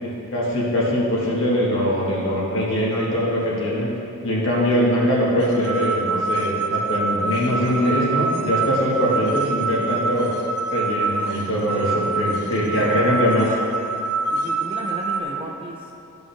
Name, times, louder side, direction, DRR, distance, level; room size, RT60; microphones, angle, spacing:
voice 1, 0.0-3.9 4.2-10.3 10.7-13.5, equal, 60° left, -5 dB, 1.8 m, -22 dB
sound 1, 5.4-15.2, right 3 dB, 90° right, 0.7 m, -26 dB
voice 2, 12.4-13.1 14.3-16.2, right 1 dB, 25° right, -1 dB, 0.7 m, -35 dB
13.5 x 5.3 x 3.4 m, 2.8 s
head